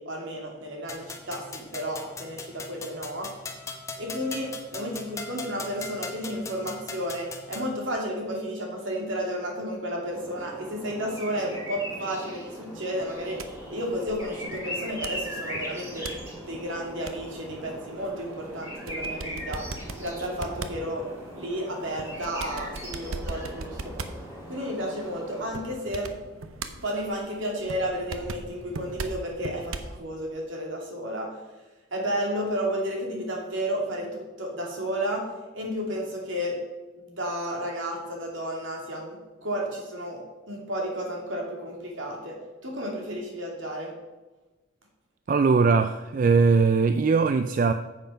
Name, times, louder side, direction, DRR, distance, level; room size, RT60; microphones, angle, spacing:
voice 1, 0.0-3.3 4.0-13.4 13.7-19.6 20.0-21.0 21.3-23.9 24.5-26.1 26.8-31.3 31.9-35.2 35.5-36.6 37.0-42.4 42.6-43.9, equal, 70° right, 0 dB, 2.7 m, -32 dB
sound 1, 0.9-7.7, left 4 dB, 15° left, 0.9 m, -40 dB
sound 2, 9.9-25.8, equal, 15° right, 3.0 m, -40 dB
sound 3, 13.0-30.0, right 3 dB, 90° right, 0.8 m, -41 dB
voice 2, 45.3-47.7, right 4 dB, 40° right, 9 dB, 0.3 m, -20 dB
9.1 x 7.5 x 5.6 m, 1.1 s
head